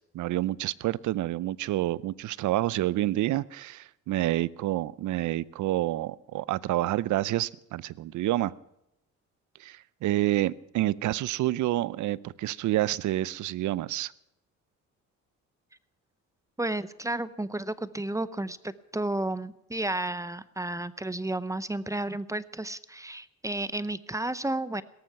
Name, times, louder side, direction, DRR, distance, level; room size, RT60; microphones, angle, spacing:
voice 1, 0.1-8.5 9.6-14.1, right 15 dB, 75° right, 0.6 m, -28 dB
voice 2, 16.6-24.8, right 2 dB, 10° right, 0.7 m, -32 dB
17.5 x 14.0 x 5.9 m
cardioid pair, 90°, 30 cm